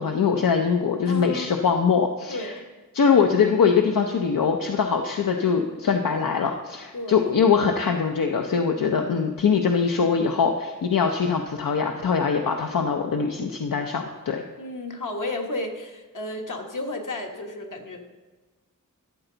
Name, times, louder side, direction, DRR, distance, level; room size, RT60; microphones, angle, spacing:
voice 1, 0.0-2.5 2.9-14.4, left 6 dB, 85° left, 3 dB, 0.7 m, -22 dB
voice 2, 1.0-1.5 2.3-2.6 6.9-7.2 14.6-18.0, left 1 dB, 70° left, 2 dB, 1.4 m, -32 dB
13.5 x 7.9 x 3.9 m, 1.3 s
wide cardioid pair, 95°, 33 cm